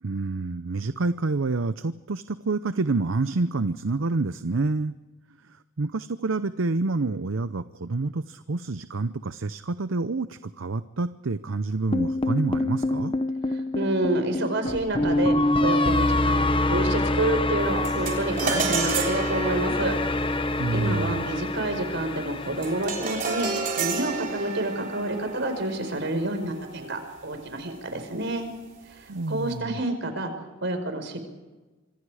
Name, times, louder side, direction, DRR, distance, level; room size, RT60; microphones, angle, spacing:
voice 1, 0.0-4.9 5.5-13.1 20.6-21.2 29.1-29.8, right 3 dB, 80° right, 12 dB, 0.7 m, -28 dB
sound 1, 11.9-24.1, left 2 dB, 25° left, 0.9 m, -26 dB
voice 2, 13.5-19.9 20.7-23.5 23.8-28.5 28.9-30.3 30.6-31.2, right 1 dB, 65° right, 7 dB, 5.1 m, -28 dB
sound 2, 17.8-27.3, right 4 dB, 45° right, 3.7 m, -32 dB
26.5 x 25.0 x 4.9 m, 1.2 s
head